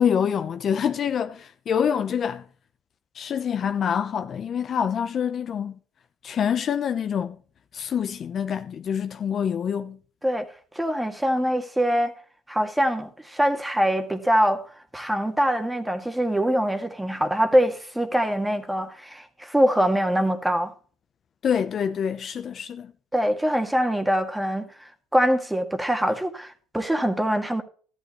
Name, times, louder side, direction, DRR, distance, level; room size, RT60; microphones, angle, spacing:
voice 1, 0.0-2.4 3.1-5.7 6.2-7.4 7.7-10.0 21.4-22.9, left 8 dB, 45° left, 0.8 m, -26 dB
voice 2, 10.8-12.1 12.5-14.7 14.9-20.7 23.1-27.6, equal, 5° right, 1.9 m, -23 dB
13.5 x 11.5 x 3.1 m
supercardioid pair, 105°, 0 cm